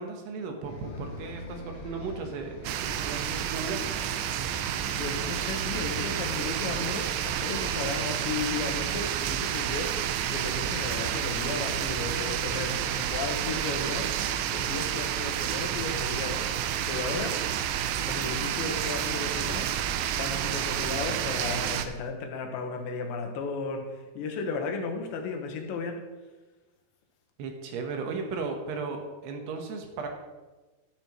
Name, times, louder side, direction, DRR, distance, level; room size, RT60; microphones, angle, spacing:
voice 1, 0.0-4.0 27.4-30.1, right 4 dB, 70° right, 3 dB, 3.2 m, -36 dB
Bus, 0.6-6.8, left 2 dB, 60° left, 2.2 m, -43 dB
sound 1, 2.6-21.9, right 10 dB, 90° right, 2.9 m, -30 dB
voice 2, 4.9-9.9 10.3-14.2 14.5-16.5 16.9-17.4 18.0-26.1, left 4 dB, 90° left, 3 dB, 3.5 m, -35 dB
13.0 x 12.0 x 3.1 m, 1.2 s
omnidirectional pair, 5.1 m